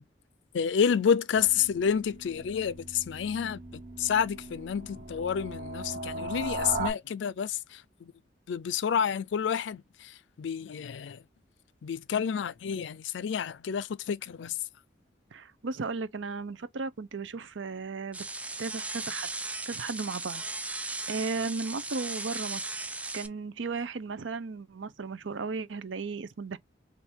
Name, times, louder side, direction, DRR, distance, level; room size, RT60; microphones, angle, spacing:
voice 1, 0.5-8.1 8.5-11.2 11.8-14.6, left 7 dB, 80° left, 0.4 m, -29 dB
sound 1, 1.3-6.9, right 2 dB, 45° right, 1.2 m, -38 dB
voice 2, 15.3-18.3 18.6-19.3 19.7-22.6 23.1-26.6, right 4 dB, 90° right, 0.6 m, -35 dB
sound 2, 18.1-23.3, right 3 dB, 5° right, 0.3 m, -37 dB
3.6 x 2.7 x 4.3 m
head